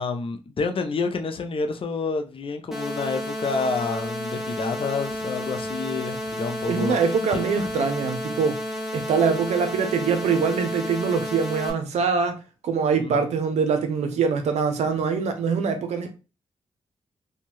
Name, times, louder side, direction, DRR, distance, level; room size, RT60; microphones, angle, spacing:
voice 1, 0.0-7.4 13.0-13.4, left 4 dB, 55° left, 0.5 m, -29 dB
sound 1, 2.7-11.7, equal, ahead, 0.9 m, -32 dB
voice 2, 6.7-8.6 8.9-16.1, right 5 dB, 80° right, 0.5 m, -24 dB
2.7 x 2.1 x 3.0 m
supercardioid pair, 50°, 11 cm